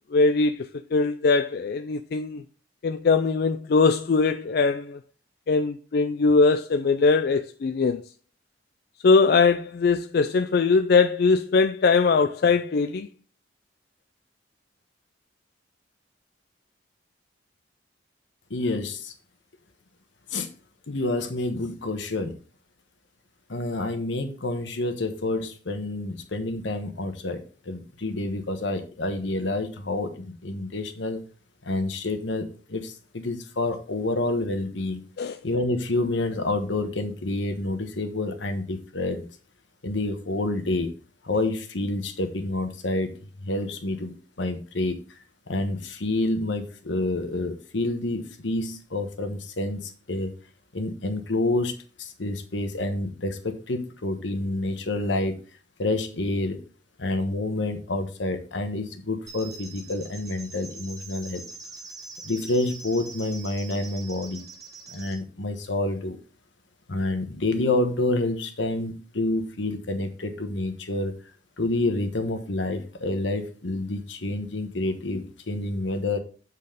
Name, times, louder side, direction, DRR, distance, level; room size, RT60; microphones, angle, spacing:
voice 1, 0.1-2.4 2.8-5.0 5.5-8.0 9.0-13.1 35.2-35.4, left 4 dB, 55° left, 0.4 m, -21 dB
voice 2, 18.5-19.1 20.3-20.5 20.9-22.4 23.5-31.2 31.6-35.0 35.4-39.2 39.8-40.9 41.2-45.0 45.5-50.3 50.7-51.7 52.0-55.4 55.8-56.6 57.0-61.4 62.2-64.4 64.9-66.2 66.9-71.1 71.6-76.2, left 2 dB, 75° left, 1.2 m, -28 dB
sound 1, 59.3-65.2, right 3 dB, 20° right, 1.0 m, -43 dB
7.6 x 4.1 x 5.1 m
head